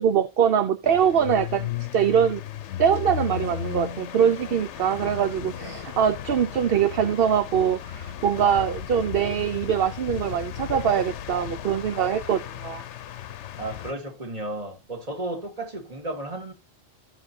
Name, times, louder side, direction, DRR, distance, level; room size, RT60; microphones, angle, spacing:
voice 1, 0.0-2.4 2.8-12.8, right 8 dB, 60° right, 0.9 m, -23 dB
sound 1, 0.8-13.9, left 10 dB, 85° left, 1.0 m, -35 dB
voice 2, 13.6-16.5, right 1 dB, 35° right, 2.2 m, -33 dB
15.0 x 5.7 x 2.7 m
omnidirectional pair, 1.2 m